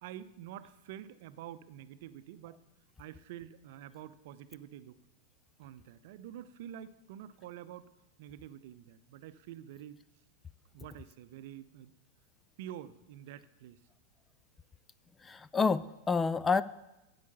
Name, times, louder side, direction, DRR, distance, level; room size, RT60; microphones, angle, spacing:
voice 1, 0.0-2.6 3.0-5.0 5.6-7.9 8.2-10.0 10.7-11.9 12.6-13.8, right 11 dB, 50° right, 13 dB, 0.7 m, -47 dB
voice 2, 15.3-16.6, left 4 dB, 15° left, 15 dB, 0.4 m, -28 dB
13.0 x 8.6 x 6.9 m, 0.98 s
figure-of-eight pair, 90°, 0 cm